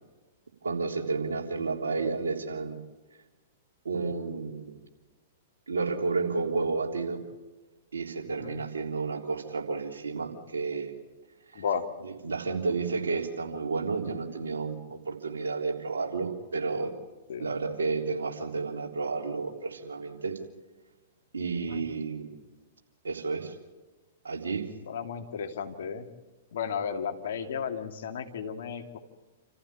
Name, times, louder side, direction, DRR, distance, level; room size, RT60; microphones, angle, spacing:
voice 1, 0.6-2.8 3.9-4.7 5.7-7.2 7.9-10.9 11.5-11.6 12.0-16.9 17.4-20.4 21.3-22.3 23.0-23.5 24.2-24.7, right 4 dB, 80° right, 2 dB, 3.4 m, -31 dB
voice 2, 8.3-8.6 9.7-9.8 11.5-11.8 17.3-17.5 21.7-21.9 24.9-26.1 26.5-29.0, left 7 dB, 65° left, 5 dB, 2.4 m, -34 dB
28.0 x 15.0 x 8.7 m, 1.2 s
figure-of-eight pair, 110°, 0 cm